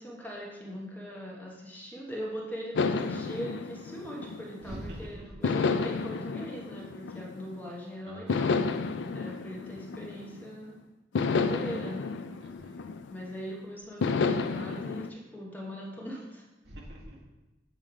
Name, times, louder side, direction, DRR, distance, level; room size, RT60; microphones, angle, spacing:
voice 1, 0.0-8.6 9.1-10.8 11.2-12.2 13.1-16.4, equal, 10° left, -3 dB, 0.9 m, -40 dB
sound 1, 2.8-4.8 5.4-7.7 8.3-10.6 11.2-13.4 14.0-15.1, left 4 dB, 85° left, 0.4 m, -31 dB
voice 2, 4.6-5.3 8.0-8.5 12.4-12.8 16.6-17.2, equal, 70° right, -3 dB, 1.5 m, -44 dB
7.3 x 3.2 x 4.9 m, 1.1 s
head